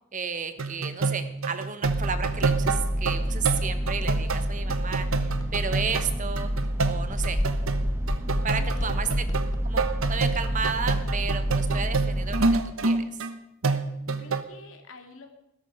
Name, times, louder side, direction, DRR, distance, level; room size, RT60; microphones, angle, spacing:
voice 1, 0.1-6.5 6.8-7.4 8.4-9.1 9.6-12.4 12.8-13.0, right 6 dB, 40° right, 10 dB, 1.1 m, -32 dB
sound 1, 0.6-13.3 13.6-14.4, right 3 dB, 90° right, 1.1 m, -28 dB
sound 2, 1.8-12.6, equal, 10° right, 1.8 m, -29 dB
sound 3, 5.4-5.5 5.8-9.9, left 1 dB, 20° left, 0.7 m, -34 dB
voice 2, 8.6-9.1 11.8-12.1 14.2-15.3, left 3 dB, 70° left, 5 dB, 2.6 m, -47 dB
16.5 x 13.5 x 5.0 m, 0.83 s
head